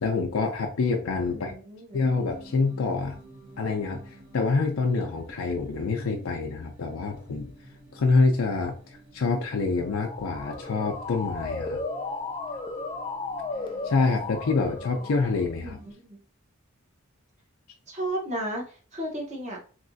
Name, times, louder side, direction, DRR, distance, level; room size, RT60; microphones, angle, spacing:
voice 1, 0.0-1.5 1.9-3.2 3.6-7.5 7.9-8.8 9.1-11.8 13.8-15.8, left 4 dB, 85° left, 2 dB, 0.5 m, -26 dB
voice 2, 1.3-2.0 15.6-16.2 17.9-19.6, right 1 dB, 35° right, -2 dB, 1.1 m, -34 dB
sound 1, 2.0-15.9, right 1 dB, 80° right, 1.4 m, -50 dB
Motor vehicle (road) / Siren, 9.7-15.6, left 3 dB, 25° left, 0.4 m, -35 dB
3.1 x 2.9 x 2.6 m, 0.39 s
head